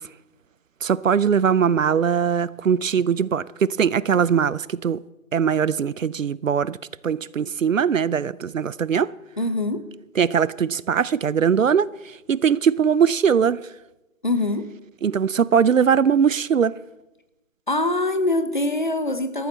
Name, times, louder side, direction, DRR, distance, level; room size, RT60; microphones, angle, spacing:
voice 1, 0.8-5.0 5.3-6.8 7.0-9.1 10.2-13.7 15.0-16.8, right 7 dB, 70° right, 0.5 m, -21 dB
voice 2, 9.4-9.8 14.2-14.7 17.7-19.5, left 2 dB, 35° left, 0.7 m, -23 dB
13.5 x 13.0 x 4.2 m
figure-of-eight pair, 165°, 41 cm